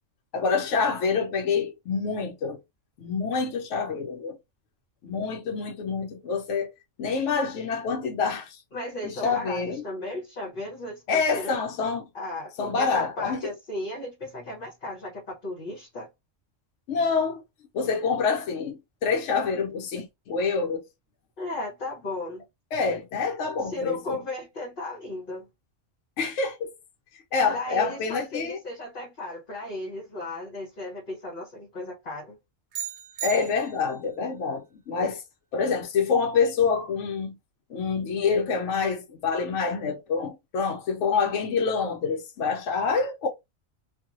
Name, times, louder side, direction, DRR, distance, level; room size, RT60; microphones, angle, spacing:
voice 1, 0.3-2.6 3.0-4.4 5.0-6.7 7.0-8.6 9.0-9.8 11.1-12.1 12.6-13.5 16.9-17.4 17.7-20.9 22.7-24.2 26.2-26.7 27.1-28.6 33.2-35.2 35.5-37.4 37.7-43.3, left 5 dB, 70° left, 0.9 m, -27 dB
voice 2, 8.7-11.6 12.1-16.1 21.4-22.4 23.6-25.5 27.5-32.4, left 2 dB, 45° left, 1.0 m, -35 dB
sound 1, 32.7-34.1, right 11 dB, 65° right, 0.9 m, -36 dB
2.9 x 2.5 x 2.4 m
omnidirectional pair, 1.3 m